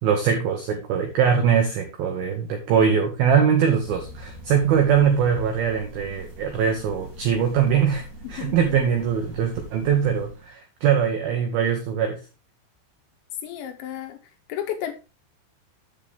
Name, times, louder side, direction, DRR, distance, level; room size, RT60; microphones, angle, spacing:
voice 1, 0.0-12.2, right 7 dB, 90° right, 2.1 m, -22 dB
sound 1, 3.8-10.5, equal, 30° right, 1.7 m, -42 dB
voice 2, 8.2-8.6 13.4-14.2 14.5-14.9, left 10 dB, 75° left, 2.9 m, -32 dB
7.6 x 7.4 x 3.5 m
omnidirectional pair, 5.8 m